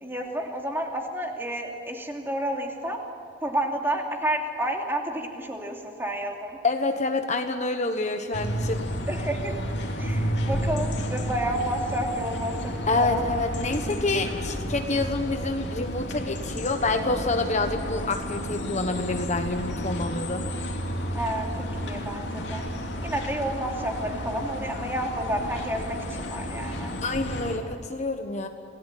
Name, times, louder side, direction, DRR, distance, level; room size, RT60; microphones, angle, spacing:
voice 1, 0.0-3.0 3.4-6.6 9.1-9.5 10.0-13.3 21.1-22.6 23.0-26.9, right 1 dB, 10° right, 1 dB, 2.7 m, -30 dB
voice 2, 6.6-8.8 12.9-20.4 27.0-28.5, left 3 dB, 35° left, 6 dB, 1.2 m, -27 dB
sound 1, 8.3-27.6, equal, 60° left, 2.9 m, -31 dB
28.0 x 18.5 x 9.2 m, 2.3 s
head